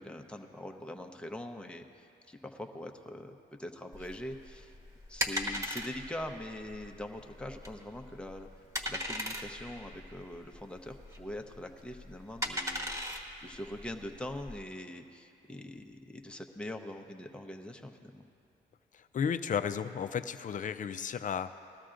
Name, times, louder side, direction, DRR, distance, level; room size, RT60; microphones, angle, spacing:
voice 1, 0.0-4.7 5.1-8.5 8.9-18.2, left 1 dB, 5° left, 3 dB, 0.8 m, -43 dB
sound 1, 3.9-14.6, equal, 15° right, 1.3 m, -38 dB
voice 2, 18.9-21.6, left 7 dB, 40° left, 11 dB, 0.5 m, -33 dB
19.5 x 13.0 x 2.5 m, 2.6 s
cardioid pair, 90°, 20 cm